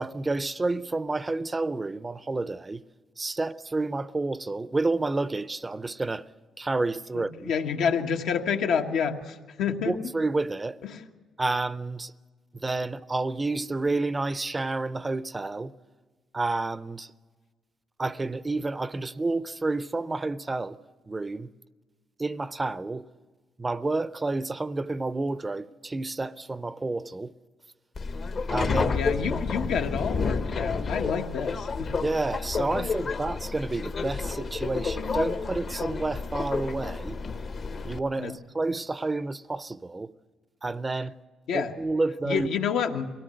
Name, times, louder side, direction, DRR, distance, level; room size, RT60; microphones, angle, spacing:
voice 1, 0.0-2.8 3.2-6.3 6.6-7.5 9.9-10.8 11.4-12.1 12.5-15.7 16.3-17.1 18.0-20.8 21.1-21.5 22.2-23.1 23.6-27.3 28.5-28.9 32.0-37.2 37.8-40.1 40.6-41.1 41.5-42.5, right 3 dB, 20° right, 0.6 m, -30 dB
voice 2, 7.1-9.9 10.8-11.0 28.7-31.9 38.2-38.3 41.5-41.7 42.2-43.1, left 6 dB, 85° left, 1.4 m, -28 dB
Subway metro underground, 27.9-38.0, left 4 dB, 50° left, 1.0 m, -30 dB
23.5 x 17.5 x 7.8 m
cardioid pair, 90°, 0 cm